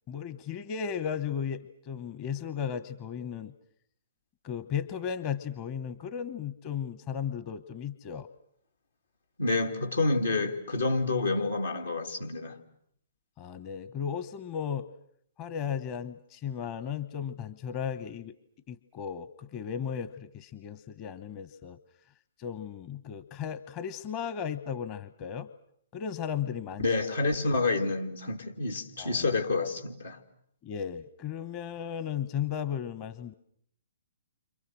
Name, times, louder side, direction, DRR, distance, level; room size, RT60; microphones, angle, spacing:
voice 1, 0.1-3.5 4.4-8.3 13.4-14.9 15.4-18.3 18.7-21.8 22.4-25.5 25.9-26.9 29.0-29.2 30.6-33.3, left 8 dB, 30° left, 1.0 m, -35 dB
voice 2, 9.4-12.6 26.8-30.2, left 3 dB, 85° left, 3.1 m, -28 dB
29.5 x 26.5 x 6.4 m
hypercardioid pair, 130°, 0 cm